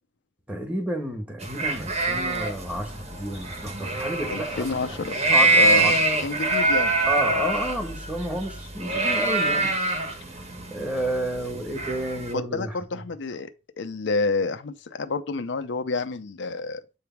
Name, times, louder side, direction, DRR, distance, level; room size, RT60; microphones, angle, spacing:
voice 1, 0.5-4.8 5.3-6.0 7.0-9.8 10.7-13.0, right 1 dB, 5° right, 1.5 m, -31 dB
sound 1, 1.4-12.3, right 2 dB, 35° right, 1.4 m, -25 dB
voice 2, 4.3-5.1 5.6-5.9 6.2-7.0 12.3-13.5 13.8-16.8, left 3 dB, 70° left, 0.5 m, -28 dB
8.0 x 3.4 x 4.5 m
head